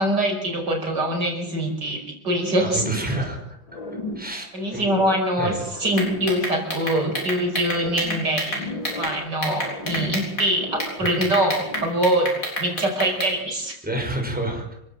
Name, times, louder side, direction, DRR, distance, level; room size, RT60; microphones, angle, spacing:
voice 1, 0.0-2.8 4.5-8.7 9.0-12.3 12.6-13.8, right 1 dB, 60° right, 3 dB, 6.0 m, -24 dB
voice 2, 2.6-3.4 4.1-4.9 5.3-5.6 11.0-11.1 13.8-14.7, right 1 dB, 5° right, 1 dB, 6.2 m, -28 dB
sound 1, 2.7-3.4 3.7-5.3 5.7-7.3 7.7-9.3 9.5-11.1 11.4-12.0, left 2 dB, 85° left, 4.0 m, -36 dB
sound 2, 5.9-9.1 9.4-10.5 10.8-13.3, equal, 45° left, 8.2 m, -28 dB
27.5 x 16.5 x 7.6 m, 0.80 s
omnidirectional pair, 2.1 m